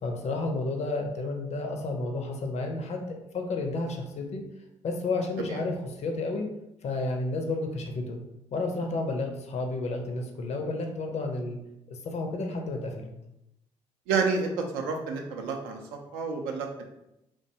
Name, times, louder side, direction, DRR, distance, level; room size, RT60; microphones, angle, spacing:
voice 1, 0.0-4.4 4.8-6.5 6.8-8.2 8.5-11.6 11.9-13.1, left 2 dB, 45° left, 4 dB, 0.5 m, -31 dB
voice 2, 14.1-15.8 16.1-16.8, right 4 dB, 70° right, 3 dB, 0.4 m, -29 dB
2.5 x 2.2 x 2.7 m, 0.87 s
figure-of-eight pair, 45°, 16 cm